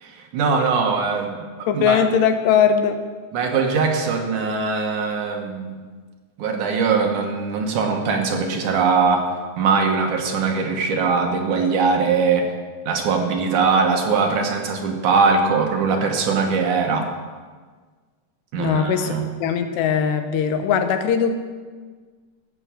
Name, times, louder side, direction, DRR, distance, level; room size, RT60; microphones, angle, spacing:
voice 1, 0.0-2.0 3.3-5.8 6.4-9.3 9.6-12.5 12.9-17.1 18.5-19.3, right 5 dB, 65° right, 2 dB, 2.2 m, -21 dB
voice 2, 1.7-3.0 18.6-19.1 19.4-21.3, left 7 dB, 80° left, 7 dB, 3.1 m, -20 dB
15.0 x 6.2 x 7.5 m, 1.5 s
omnidirectional pair, 4.8 m